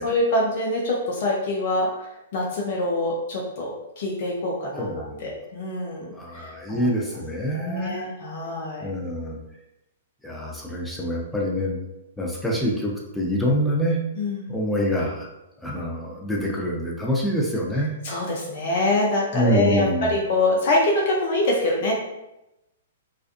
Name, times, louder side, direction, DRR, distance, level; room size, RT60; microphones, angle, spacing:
voice 1, 0.0-4.9 5.2-6.9 7.5-8.9 14.2-14.6 18.0-21.9, left 2 dB, 50° left, -2 dB, 0.5 m, -25 dB
voice 2, 4.7-5.3 6.1-8.1 8.8-9.4 10.2-11.8 12.2-14.0 14.5-15.3 15.6-17.9 19.3-20.1, equal, 5° left, -4 dB, 0.6 m, -26 dB
2.4 x 2.3 x 2.5 m, 0.92 s
figure-of-eight pair, 115°, 0 cm